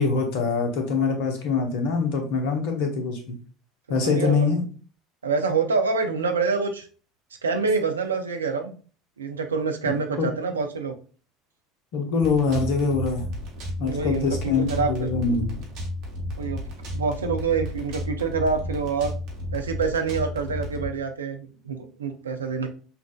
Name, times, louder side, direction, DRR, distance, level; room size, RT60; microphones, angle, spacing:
voice 1, 0.0-3.3 3.9-4.6 9.9-10.3 11.9-13.2 13.8-15.7, left 4 dB, 55° left, 4 dB, 0.9 m, -24 dB
voice 2, 4.0-4.5 5.2-6.9 7.4-8.8 9.2-11.0 13.8-14.3 14.7-14.9 16.4-16.6 16.9-19.1 19.5-22.7, right 5 dB, 75° right, 5 dB, 0.5 m, -26 dB
sound 1, 12.2-20.9, left 1 dB, 50° right, 1.1 m, -33 dB
5.7 x 2.5 x 2.2 m, 0.38 s
figure-of-eight pair, 65°, 0 cm